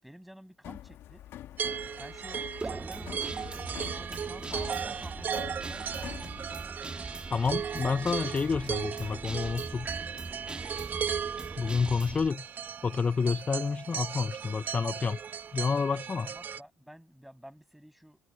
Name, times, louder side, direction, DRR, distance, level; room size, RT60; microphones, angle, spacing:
voice 1, 0.0-1.2 2.0-6.4 16.2-18.2, equal, 5° right, 7.4 m, -50 dB
sound 1, 0.6-6.6, left 12 dB, 60° left, 2.0 m, -46 dB
sound 2, 1.6-16.6, right 7 dB, 45° right, 1.5 m, -37 dB
Guitar, 2.6-12.3, right 3 dB, 25° right, 2.9 m, -41 dB
voice 2, 7.3-9.9 11.6-12.4 12.8-15.2 15.5-16.3, left 5 dB, 30° left, 0.7 m, -29 dB
hypercardioid pair, 60°, 4 cm